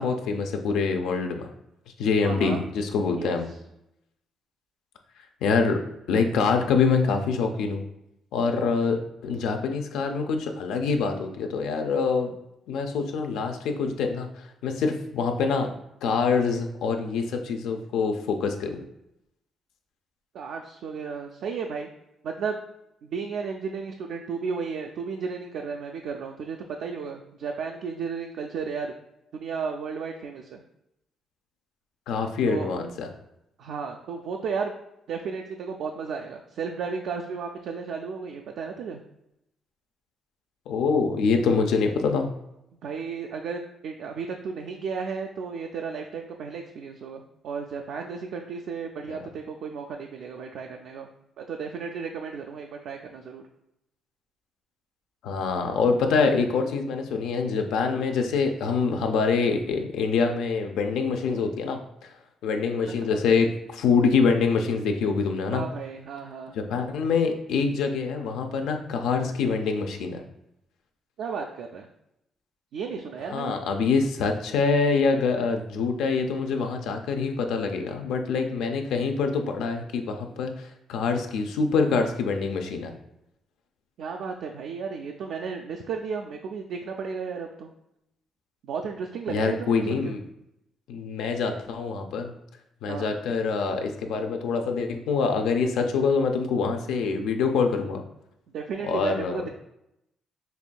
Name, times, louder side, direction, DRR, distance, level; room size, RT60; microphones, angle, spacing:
voice 1, 0.0-1.5 2.0-3.5 5.4-5.8 6.1-7.8 8.3-12.3 12.7-15.7 16.0-18.8 32.1-33.1 40.7-42.3 49.1-49.2 55.2-62.1 62.4-65.6 66.5-70.2 73.3-82.9 89.3-90.2 90.9-92.3 92.8-98.0 98.8-99.4, left 5 dB, 85° left, 5 dB, 0.4 m, -25 dB
voice 2, 2.2-2.6 3.2-3.3 8.4-8.7 20.3-21.9 22.2-22.6 23.0-28.9 29.3-30.6 32.4-32.7 33.6-34.7 35.1-39.0 42.8-51.1 51.5-53.4 65.5-66.6 71.2-71.9 72.7-73.6 84.0-87.7 88.6-90.2 92.9-93.1 98.5-99.5, right 5 dB, 75° right, 2 dB, 0.3 m, -34 dB
5.4 x 2.5 x 2.2 m, 0.83 s
cardioid pair, 90°, 0 cm